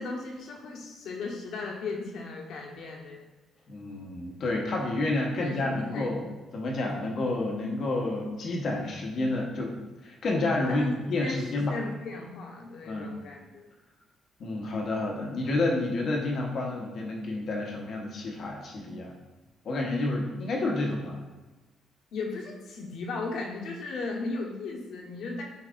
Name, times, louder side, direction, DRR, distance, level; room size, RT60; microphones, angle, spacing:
voice 1, 0.0-3.2 5.4-6.1 10.7-13.7 22.1-25.4, left 3 dB, 75° left, -1 dB, 1.2 m, -36 dB
voice 2, 3.7-6.2 6.5-9.8 10.0-11.7 12.9-13.2 14.4-19.1 19.6-21.2, left 2 dB, 50° left, 0 dB, 1.0 m, -29 dB
8.1 x 4.7 x 2.5 m, 1.1 s
cardioid pair, 145°, 0 cm